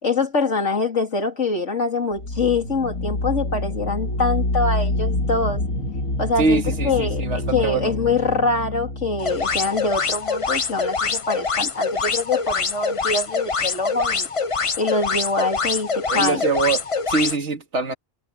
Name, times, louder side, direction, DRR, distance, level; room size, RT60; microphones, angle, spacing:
voice 1, 0.0-5.6 6.2-7.3 7.5-14.3 14.8-16.4, left 3 dB, 60° left, 3.7 m, -24 dB
sound 1, 2.1-10.8, left 2 dB, 85° left, 3.5 m, -27 dB
voice 2, 6.4-7.9 16.1-17.9, right 4 dB, 55° right, 2.5 m, -23 dB
sound 2, 9.2-17.4, left 4 dB, 30° left, 0.7 m, -24 dB
omnidirectional pair, 1.4 m